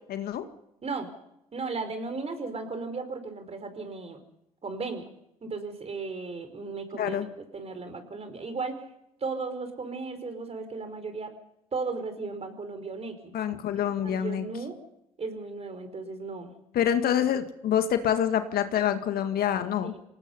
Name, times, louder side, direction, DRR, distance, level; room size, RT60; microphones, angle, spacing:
voice 1, 0.1-0.5 6.9-7.3 13.3-14.5 16.7-19.9, left 9 dB, 55° left, 8 dB, 1.9 m, -26 dB
voice 2, 1.5-4.2 4.6-5.1 5.4-8.9 9.2-11.3 11.7-13.3 13.7-14.8 15.2-16.5 19.8-20.0, right 4 dB, 35° right, 8 dB, 4.8 m, -35 dB
27.0 x 18.5 x 5.5 m, 0.81 s
hypercardioid pair, 55°, 19 cm